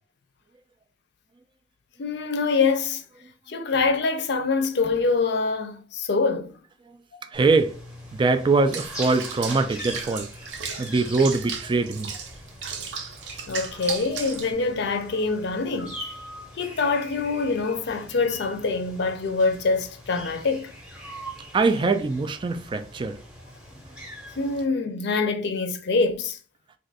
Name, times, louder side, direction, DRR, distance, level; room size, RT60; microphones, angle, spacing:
voice 1, 2.0-3.0 3.5-6.6 7.1-7.2 13.5-16.0 16.6-20.7 24.4-26.4, left 4 dB, 65° left, 0.5 m, -25 dB
sound 1, 7.3-24.6, equal, 5° right, 0.7 m, -42 dB
voice 2, 7.3-7.8 8.1-10.3 10.8-12.1 21.5-23.2 23.8-23.9, right 3 dB, 25° right, 0.3 m, -23 dB
Water / Bathtub (filling or washing), 8.7-14.5, right 6 dB, 75° right, 0.6 m, -35 dB
2.6 x 2.4 x 3.9 m
head